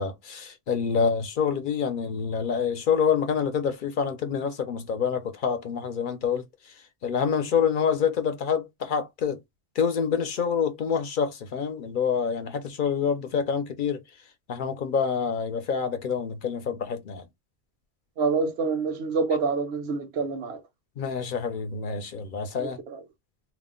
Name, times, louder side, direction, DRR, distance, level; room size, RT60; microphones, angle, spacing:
voice 1, 0.0-6.4 7.0-9.4 9.8-14.0 14.5-17.2 21.0-22.8, left 6 dB, 60° left, 0.7 m, -27 dB
voice 2, 18.2-20.6 22.6-23.0, right 4 dB, 85° right, 0.9 m, -27 dB
2.4 x 2.1 x 3.6 m
omnidirectional pair, 1.1 m